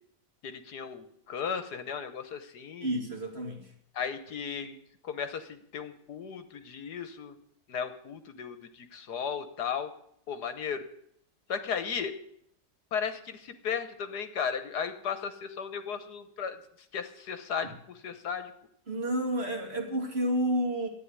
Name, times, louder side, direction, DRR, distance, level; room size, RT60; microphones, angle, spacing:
voice 1, 0.4-2.9 3.9-4.8 5.0-7.4 7.7-9.9 10.3-10.8 11.5-12.2 12.9-16.6 16.9-17.7 18.0-18.5, left 7 dB, 70° left, 10 dB, 1.6 m, -35 dB
voice 2, 2.8-3.7 18.9-20.9, equal, 35° right, 1 dB, 2.9 m, -30 dB
13.5 x 9.4 x 9.7 m, 0.70 s
omnidirectional pair, 1.9 m